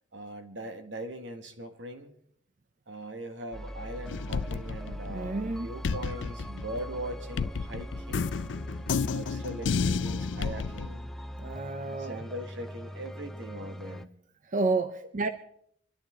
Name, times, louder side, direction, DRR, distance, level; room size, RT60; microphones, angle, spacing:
voice 1, 0.1-2.1 2.9-8.3 9.1-11.1 11.9-14.1, right 1 dB, 85° right, 6 dB, 1.8 m, -41 dB
sound 1, 3.5-14.1, equal, ahead, 0.5 m, -41 dB
sound 2, 4.1-5.5 5.8-10.9, left 5 dB, 85° left, 0.5 m, -31 dB
voice 2, 5.1-5.7 6.0-6.1 11.3-12.3 14.4-15.3, right 3 dB, 45° right, 9 dB, 0.7 m, -31 dB
25.5 x 11.5 x 3.8 m, 0.70 s
head